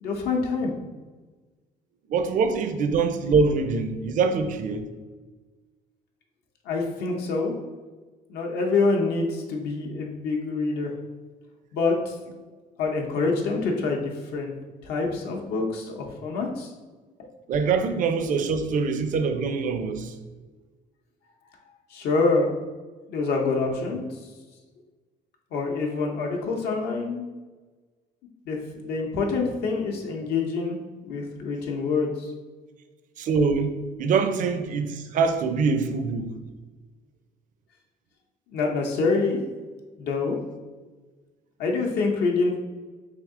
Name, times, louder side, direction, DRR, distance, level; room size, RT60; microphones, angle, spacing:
voice 1, 0.0-0.7 6.6-7.5 8.3-10.9 11.7-12.2 12.8-14.5 14.8-16.7 21.9-22.6 23.1-24.3 25.5-27.3 28.4-30.8 31.0-32.3 38.5-39.4 40.0-40.4 41.6-42.6, left 3 dB, 75° left, 0.7 m, -26 dB
voice 2, 2.1-4.8 17.5-20.1 33.2-36.3, right 5 dB, 50° right, 0.4 m, -24 dB
3.5 x 2.7 x 3.6 m
cardioid pair, 110°, 17 cm